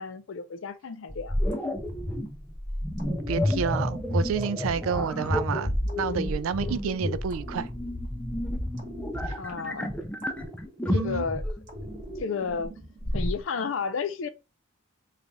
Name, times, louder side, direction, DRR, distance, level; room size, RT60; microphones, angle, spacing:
voice 1, 0.0-1.4 9.4-9.9 10.9-11.4 12.2-12.7 13.0-14.3, left 5 dB, 70° left, 0.5 m, -32 dB
sound 1, 1.1-13.4, left 1 dB, 5° left, 0.3 m, -30 dB
sound 2, 1.5-2.5 3.0-5.4 5.9-8.3 8.8-11.2 11.7-13.1, right 2 dB, 35° right, 1.0 m, -46 dB
voice 2, 3.1-7.7 9.3-9.4 10.9-11.2, right 6 dB, 85° right, 0.3 m, -30 dB
3.2 x 2.4 x 3.8 m
head